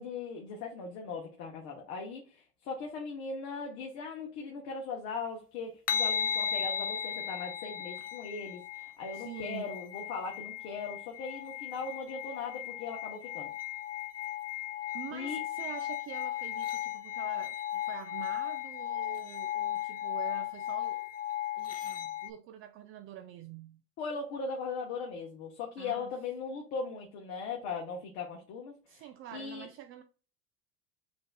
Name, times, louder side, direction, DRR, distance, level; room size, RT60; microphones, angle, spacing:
voice 1, 0.0-13.5 15.1-15.4 24.0-29.0 29.3-29.7, left 4 dB, 60° left, 1.1 m, -39 dB
sound 1, 5.9-22.3, left 10 dB, 30° left, 0.4 m, -36 dB
voice 2, 9.1-9.7 14.9-21.1 21.5-23.8 25.8-26.1 28.9-30.0, right 11 dB, 40° right, 0.4 m, -46 dB
7.3 x 2.7 x 2.3 m
supercardioid pair, 130°, 32 cm